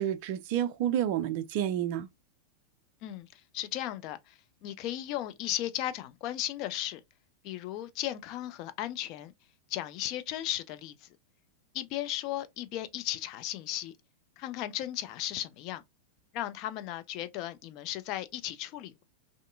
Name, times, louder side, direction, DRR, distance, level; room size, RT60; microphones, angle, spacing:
voice 1, 0.0-2.1, right 10 dB, 45° right, 0.3 m, -29 dB
voice 2, 3.0-7.0 7.4-9.3 9.7-11.1 11.7-14.0 14.4-15.8 16.3-19.0, left 13 dB, 40° left, 0.3 m, -36 dB
2.5 x 2.4 x 2.4 m
figure-of-eight pair, 90°, 0 cm